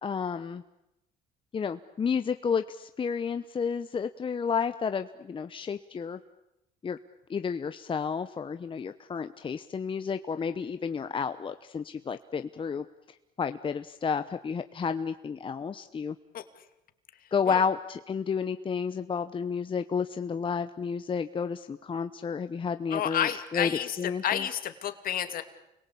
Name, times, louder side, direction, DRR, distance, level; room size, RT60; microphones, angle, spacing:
voice 1, 0.0-0.6 1.5-6.2 6.8-7.0 7.3-12.8 13.4-16.1 17.3-23.7 24.0-24.5, left 6 dB, 30° left, 9 dB, 1.0 m, -31 dB
voice 2, 22.9-25.4, left 10 dB, 60° left, 9 dB, 2.6 m, -30 dB
29.5 x 22.0 x 8.6 m, 0.90 s
cardioid pair, 110°, 17 cm